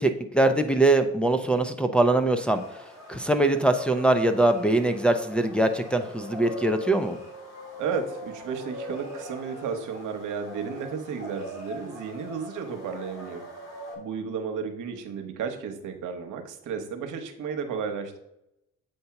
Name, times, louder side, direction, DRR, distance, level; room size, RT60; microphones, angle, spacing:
voice 1, 0.0-2.6 3.1-7.2, right 2 dB, 5° left, 5 dB, 0.5 m, -22 dB
sound 1, 2.5-14.0, left 1 dB, 55° left, 2.2 m, -41 dB
voice 2, 7.8-13.5 14.0-18.2, right 6 dB, 85° right, 5 dB, 1.0 m, -33 dB
7.8 x 2.8 x 5.7 m, 0.83 s
cardioid pair, 90°, 30 cm